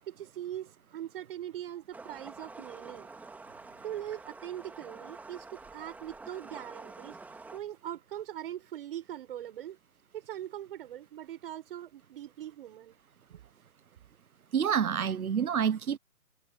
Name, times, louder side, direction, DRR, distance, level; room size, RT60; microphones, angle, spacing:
voice 1, 0.1-3.1 3.8-7.2 7.5-9.8 10.1-13.0 13.3-13.4, right 11 dB, 40° right, 6.9 m, -41 dB
sound 1, 1.9-7.6, right 3 dB, 5° right, 2.7 m, -48 dB
voice 2, 14.5-16.0, right 8 dB, 70° right, 1.0 m, -28 dB
figure-of-eight pair, 145°, 44 cm